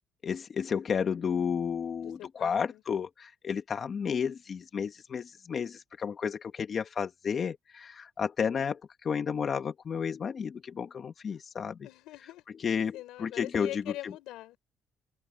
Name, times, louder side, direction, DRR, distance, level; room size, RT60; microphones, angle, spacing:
voice 1, 0.2-11.8 12.6-14.1, left 7 dB, 45° left, 1.4 m, -32 dB
voice 2, 2.0-2.8 11.8-12.4 12.9-14.6, left 16 dB, 85° left, 5.0 m, -43 dB
open air
cardioid pair, 105°, 0 cm